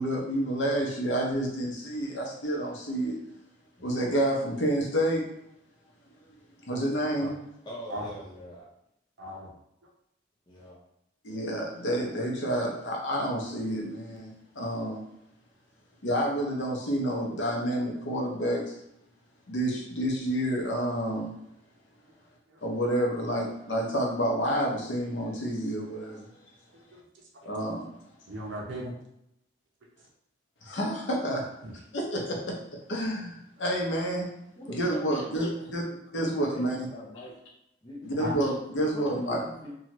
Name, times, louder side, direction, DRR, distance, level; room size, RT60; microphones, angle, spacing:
voice 1, 0.0-3.2 3.8-5.3 6.6-7.4 11.2-15.0 16.0-18.7 19.5-21.3 22.6-26.3 27.4-27.9 30.6-31.5 31.9-32.6 32.9-34.3 34.7-35.8 36.1-36.8 38.0-39.4, right 1 dB, 80° left, -1 dB, 0.7 m, -29 dB
voice 2, 7.6-8.7 10.5-10.8 34.6-37.4 37.8-38.3 38.8-39.7, equal, 20° left, -5 dB, 0.5 m, -43 dB
voice 3, 9.2-9.5 22.5-22.6 26.7-27.0 28.3-28.9 31.6-31.7 33.9-34.0 38.2-38.4, equal, 80° right, -2 dB, 0.6 m, -37 dB
2.7 x 2.3 x 2.9 m, 0.80 s
head